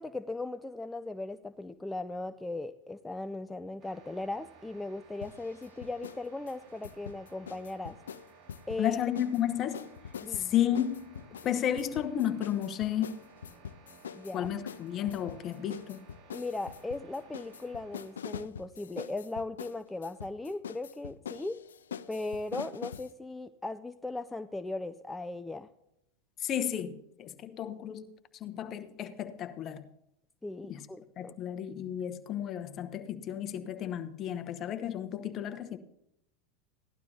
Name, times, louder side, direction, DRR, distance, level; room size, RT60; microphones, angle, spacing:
voice 1, 0.0-8.0 8.7-9.0 10.2-10.5 14.1-14.5 16.3-21.6 22.1-25.7 30.4-31.3, left 2 dB, 10° left, 9 dB, 0.4 m, -38 dB
sound 1, 3.8-18.3, right 5 dB, 50° right, 2.4 m, -57 dB
sound 2, 5.2-6.2 6.5-9.4 9.7-23.1, left 8 dB, 85° left, 0.4 m, -44 dB
voice 2, 8.8-9.9 10.3-13.2 14.3-16.1 26.4-29.8 30.6-30.9 31.2-35.8, left 10 dB, 40° left, 10 dB, 1.0 m, -33 dB
17.0 x 12.0 x 2.8 m, 0.80 s
hypercardioid pair, 100°, 0 cm